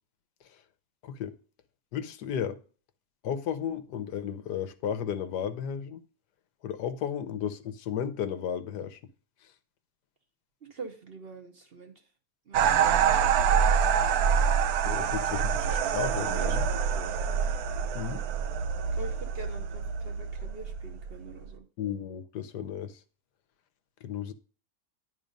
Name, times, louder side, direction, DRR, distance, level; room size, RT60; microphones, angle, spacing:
voice 1, 1.0-1.4 1.9-2.6 3.2-6.0 6.6-9.0 14.8-16.7 17.9-18.3 21.8-23.0 24.0-24.3, left 8 dB, 85° left, 1.4 m, -34 dB
voice 2, 10.7-11.9 12.5-13.0 13.3-13.7 14.9-15.1 16.3-17.2 18.9-21.7, right 3 dB, 45° right, 1.0 m, -45 dB
sound 1, 12.5-21.5, right 7 dB, 70° right, 1.1 m, -26 dB
10.5 x 3.9 x 5.2 m
omnidirectional pair, 1.7 m